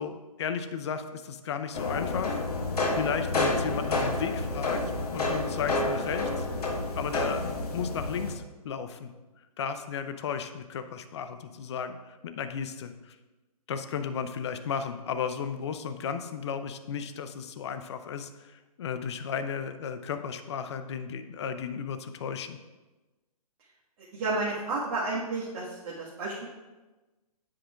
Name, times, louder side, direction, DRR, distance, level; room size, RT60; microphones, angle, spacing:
voice 1, 0.0-2.6 2.9-4.8 5.1-6.5 7.0-7.5 7.7-9.1 9.6-13.2 13.7-22.6, left 7 dB, 45° left, 9 dB, 0.6 m, -34 dB
sound 1, 1.7-8.3, left 2 dB, 75° left, 1.3 m, -29 dB
voice 2, 24.1-26.5, right 3 dB, 35° right, -8 dB, 1.6 m, -31 dB
10.0 x 7.7 x 2.4 m, 1.2 s
figure-of-eight pair, 135°, 20 cm